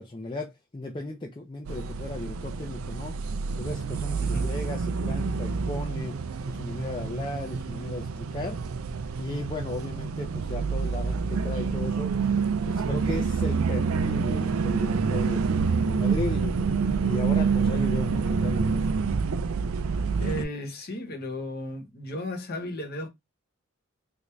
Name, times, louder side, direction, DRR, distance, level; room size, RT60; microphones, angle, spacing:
voice 1, 0.0-3.1 3.6-6.2 6.5-8.6 9.2-12.2 12.6-15.5 15.9-18.9, left 2 dB, 20° left, 0.5 m, -35 dB
sound 1, 1.7-20.4, right 5 dB, 75° right, 0.4 m, -27 dB
voice 2, 4.2-4.5 20.2-23.1, left 1 dB, 50° left, 1.1 m, -34 dB
3.4 x 2.6 x 3.1 m
head